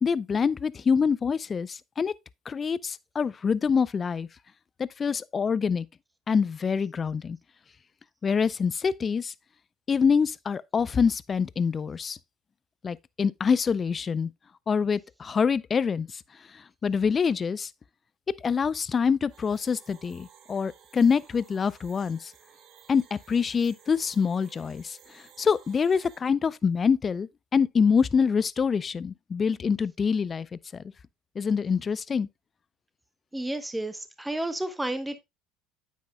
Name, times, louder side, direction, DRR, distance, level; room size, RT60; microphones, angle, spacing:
voice 1, 0.0-2.1 2.5-4.3 4.8-5.9 6.3-7.4 8.2-9.3 9.9-12.2 12.8-14.3 14.7-16.2 16.5-17.7 18.4-22.3 22.9-30.8 31.4-32.3, left 6 dB, 35° left, 0.4 m, -25 dB
sound 1, 19.3-26.2, right 8 dB, 55° right, 1.4 m, -55 dB
voice 2, 33.3-35.2, right 1 dB, 10° right, 0.9 m, -31 dB
9.4 x 8.4 x 2.2 m
hypercardioid pair, 70°, 0 cm